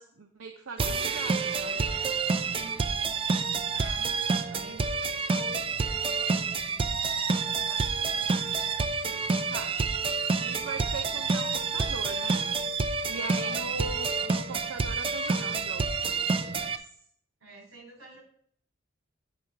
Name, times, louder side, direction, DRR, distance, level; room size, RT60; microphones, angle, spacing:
voice 1, 0.0-1.8 4.3-4.9 9.3-9.8 10.1-12.4 13.1-16.9, right 3 dB, 90° right, 5 dB, 0.6 m, -41 dB
sound 1, 0.8-16.8, right 4 dB, 25° right, 0.4 m, -28 dB
voice 2, 2.3-2.8 3.7-4.1 4.4-4.9 5.2-7.0 7.3-8.2 13.1-13.6 17.4-18.2, right 3 dB, 70° right, -1 dB, 3.6 m, -48 dB
9.4 x 3.7 x 5.7 m, 0.64 s
head